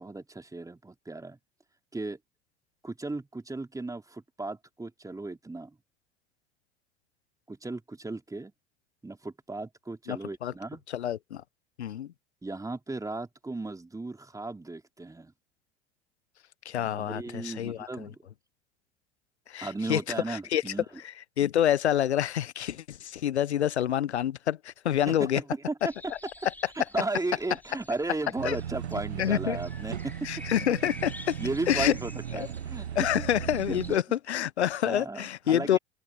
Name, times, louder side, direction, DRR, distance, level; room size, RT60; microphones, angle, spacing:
voice 1, 0.0-1.4 1.9-2.2 2.8-5.8 7.5-8.5 9.0-10.8 12.4-15.3 16.8-18.2 19.6-20.9 25.1-26.1 26.4-26.5 26.7-30.3 31.4-32.9 33.7-33.8 34.8-35.8, right 2 dB, 10° right, 3.8 m, -35 dB
voice 2, 10.9-11.4 11.8-12.1 16.7-18.1 19.5-20.0 20.3-20.6 21.4-25.4 28.4-28.6 29.2-29.6 30.2-31.4 31.7-31.9 32.4-32.5 33.0-35.8, left 10 dB, 85° left, 0.7 m, -27 dB
sound 1, 25.8-34.0, left 1 dB, 5° left, 4.1 m, -49 dB
sound 2, 28.4-34.0, right 9 dB, 85° right, 1.2 m, -37 dB
open air
hypercardioid pair, 80°, 32 cm